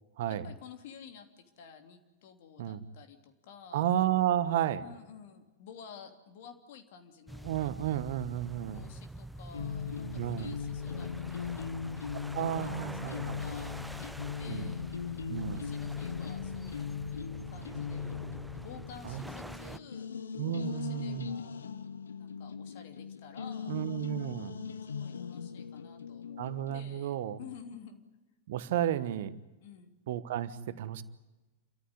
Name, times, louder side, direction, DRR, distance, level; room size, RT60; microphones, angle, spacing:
voice 1, 0.3-3.9 4.8-7.5 8.7-11.7 13.0-14.8 15.5-16.9 17.5-20.1 20.6-21.6 22.1-23.8 24.9-26.4 26.7-28.0 29.6-30.0, left 7 dB, 55° left, 6 dB, 3.0 m, -51 dB
voice 2, 3.7-4.8 7.4-8.8 10.2-10.5 12.3-13.4 14.5-14.7 15.3-15.7 19.0-19.2 19.6-19.8 20.4-21.3 23.7-24.5 26.4-27.4 28.5-29.3 30.1-31.0, right 11 dB, 60° right, 14 dB, 1.2 m, -32 dB
sound 1, 7.3-19.8, right 1 dB, ahead, 0.7 m, -46 dB
sound 2, 9.5-26.8, left 6 dB, 75° left, 1.0 m, -39 dB
29.5 x 14.0 x 9.8 m, 1.1 s
figure-of-eight pair, 95°, 0 cm